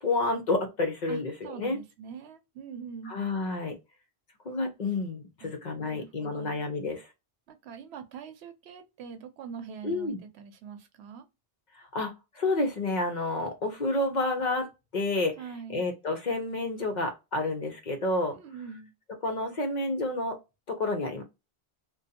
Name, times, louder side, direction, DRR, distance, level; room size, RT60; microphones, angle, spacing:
voice 1, 0.0-1.8 3.1-3.8 4.4-7.1 9.8-10.2 11.9-15.3 15.7-18.4 19.2-20.4 20.7-21.2, left 2 dB, 50° left, 0.7 m, -29 dB
voice 2, 1.1-3.3 5.4-5.6 5.8-6.6 7.5-11.2 15.4-15.8 18.3-18.9, right 6 dB, 85° right, 0.9 m, -43 dB
2.5 x 2.2 x 2.6 m
omnidirectional pair, 1.1 m